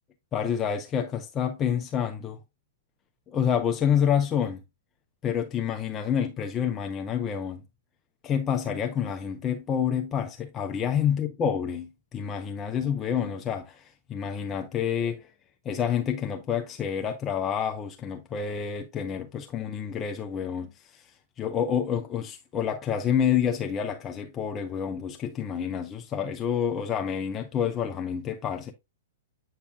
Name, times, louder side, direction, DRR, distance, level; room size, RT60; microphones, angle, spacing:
voice 1, 0.3-2.4 3.3-4.6 5.2-7.6 8.2-15.3 15.6-21.1 21.4-28.7, left 8 dB, 25° left, 0.7 m, -28 dB
8.4 x 5.6 x 2.3 m
hypercardioid pair, 110°, 0 cm